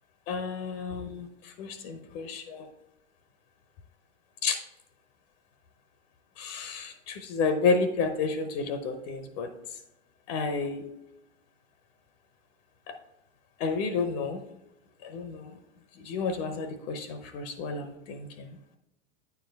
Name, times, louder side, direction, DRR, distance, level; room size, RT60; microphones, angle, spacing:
voice 1, 0.3-2.7 4.4-4.6 6.4-9.5 10.3-10.8 12.9-13.0 13.6-14.4 15.0-15.6 16.0-18.6, left 4 dB, 50° left, 8 dB, 0.8 m, -31 dB
8.9 x 4.7 x 3.4 m, 0.85 s
hypercardioid pair, 100°, 38 cm